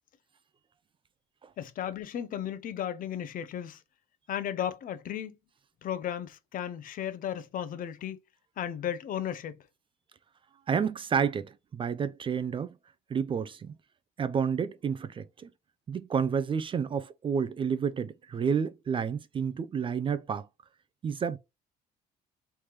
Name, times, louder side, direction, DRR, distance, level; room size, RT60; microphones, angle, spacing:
voice 1, 1.6-3.8 4.3-5.4 5.8-8.2 8.6-9.6, left 10 dB, 55° left, 0.6 m, -35 dB
voice 2, 10.7-12.7 13.1-13.7 14.2-15.5 15.9-20.5 21.0-21.4, right 6 dB, 30° right, 0.4 m, -30 dB
3.3 x 2.9 x 3.3 m
cardioid pair, 110°, 17 cm